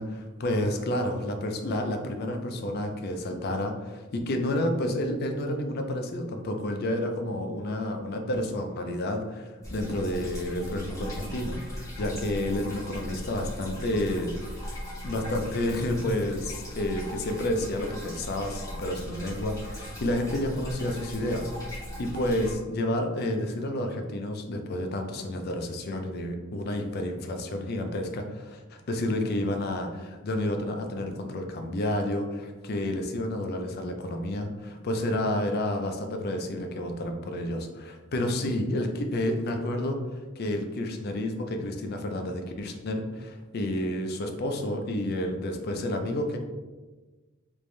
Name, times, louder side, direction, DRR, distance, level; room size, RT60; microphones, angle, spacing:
voice 1, 0.0-14.7 15.0-46.4, left 1 dB, 50° left, 4 dB, 0.4 m, -30 dB
sound 1, 9.6-22.5, equal, 15° left, 1.1 m, -38 dB
3.2 x 2.6 x 3.2 m, 1.3 s
head